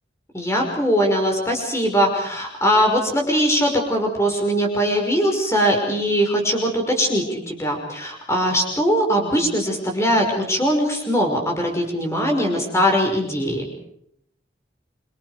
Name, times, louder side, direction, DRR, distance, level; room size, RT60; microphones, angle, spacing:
voice 1, 0.3-13.6, equal, 15° left, 2 dB, 5.6 m, -21 dB
29.0 x 26.0 x 5.1 m, 0.73 s
head